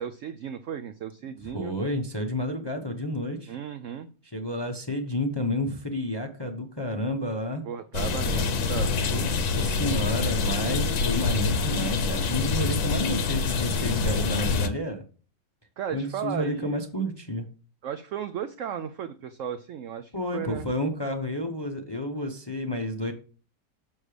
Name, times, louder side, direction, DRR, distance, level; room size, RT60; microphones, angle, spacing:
voice 1, 0.0-1.8 3.5-4.1 7.6-9.3 15.8-16.8 17.8-20.7, right 8 dB, 85° right, 10 dB, 0.6 m, -35 dB
voice 2, 1.5-3.5 4.3-7.6 9.1-15.0 15.9-17.5 20.1-23.1, left 1 dB, 25° left, 4 dB, 0.5 m, -30 dB
sound 1, 7.9-14.7, left 4 dB, 65° left, 1.3 m, -26 dB
7.2 x 6.3 x 3.3 m, 0.38 s
omnidirectional pair, 1.9 m